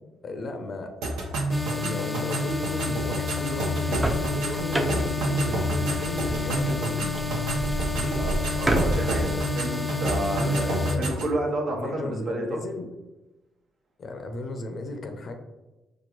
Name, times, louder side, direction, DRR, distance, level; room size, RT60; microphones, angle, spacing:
voice 1, 0.2-1.0 1.7-7.1 7.8-8.3 10.3-11.2 11.7-12.9 14.0-15.3, left 2 dB, 55° left, 5 dB, 0.6 m, -35 dB
sound 1, 1.0-11.3, right 1 dB, 80° right, 0.7 m, -29 dB
sound 2, 1.5-11.0, left 4 dB, 10° left, 0.7 m, -31 dB
sound 3, 3.7-9.4, right 1 dB, 25° right, 0.7 m, -31 dB
voice 2, 8.2-12.6, right 1 dB, 55° right, 1 dB, 0.9 m, -30 dB
4.4 x 2.4 x 2.9 m, 1.0 s
supercardioid pair, 55°, 0 cm